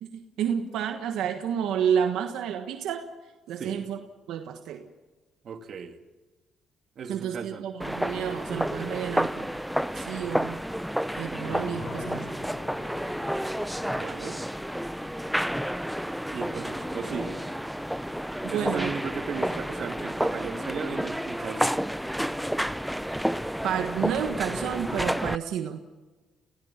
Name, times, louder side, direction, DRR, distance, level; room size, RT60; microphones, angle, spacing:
voice 1, 0.0-3.1 3.5-4.0 4.3-4.9 7.1-9.6 9.9-10.6 11.2-12.4 18.4-18.9 23.6-25.8, right 8 dB, 85° right, 6 dB, 1.4 m, -30 dB
voice 2, 5.4-6.0 7.0-7.7 13.9-14.4 16.3-17.4 18.5-21.8, right 6 dB, 55° right, 6 dB, 2.2 m, -36 dB
sound 1, 7.8-25.4, equal, ahead, 0.6 m, -30 dB
sound 2, 11.5-19.7, left 2 dB, 35° left, 3.8 m, -45 dB
29.5 x 17.0 x 5.9 m, 1.3 s
cardioid pair, 90°, 0 cm